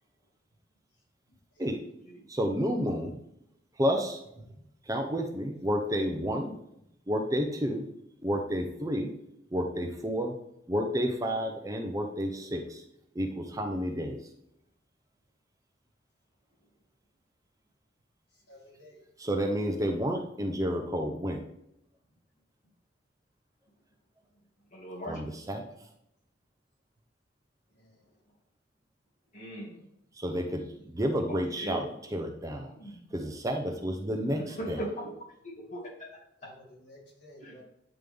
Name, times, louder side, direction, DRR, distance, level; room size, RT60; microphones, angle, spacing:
voice 1, 2.3-3.2 3.8-4.2 4.9-6.5 7.1-7.9 8.2-9.1 9.5-10.3 10.7-12.8 13.1-14.2 19.2-21.4 25.0-25.6 30.2-32.7 33.1-34.8, equal, 20° right, 4 dB, 0.5 m, -30 dB
voice 2, 18.3-19.0 27.7-28.1 36.4-37.6, equal, 65° left, -2 dB, 2.0 m, -54 dB
voice 3, 24.7-25.3 29.3-29.9 31.3-31.8 32.5-33.1 34.4-35.1 35.4-36.5 37.4-37.6, equal, 40° left, -4 dB, 2.0 m, -40 dB
9.1 x 3.6 x 3.4 m, 0.77 s
head